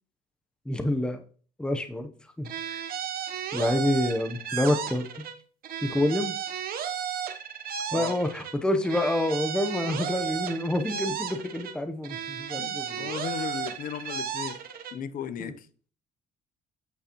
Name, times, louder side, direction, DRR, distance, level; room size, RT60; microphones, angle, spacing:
voice 1, 0.7-1.2 1.6-2.1 2.4-2.5 3.5-5.2 5.8-6.4 7.9-13.1 15.4-15.5, left 1 dB, 5° left, 0.8 m, -27 dB
sound 1, 2.4-5.4 5.6-8.6 8.8-11.8 12.0-15.0, right 8 dB, 60° right, 0.9 m, -34 dB
voice 2, 12.5-14.6 14.9-15.7, left 9 dB, 55° left, 0.7 m, -36 dB
8.3 x 6.5 x 3.0 m
cardioid pair, 110°, 17 cm